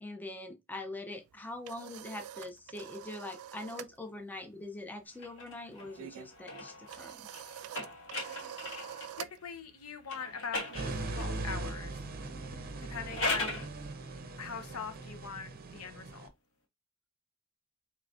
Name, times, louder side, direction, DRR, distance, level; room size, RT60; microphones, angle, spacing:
voice 1, 0.0-7.2 13.4-13.5, left 2 dB, 10° left, 0.5 m, -43 dB
sound 1, 1.3-4.0 4.2-4.5 4.8-11.5, right 11 dB, 75° right, 0.3 m, -47 dB
sound 2, 5.1-9.2 10.0-11.4 12.8-13.7, left 2 dB, 60° left, 1.4 m, -39 dB
voice 2, 9.2-12.0 12.8-13.6 14.4-16.3, left 5 dB, 80° left, 0.7 m, -42 dB
sound 3, 10.7-16.3, right 2 dB, 45° right, 0.7 m, -40 dB
4.8 x 3.2 x 2.5 m
head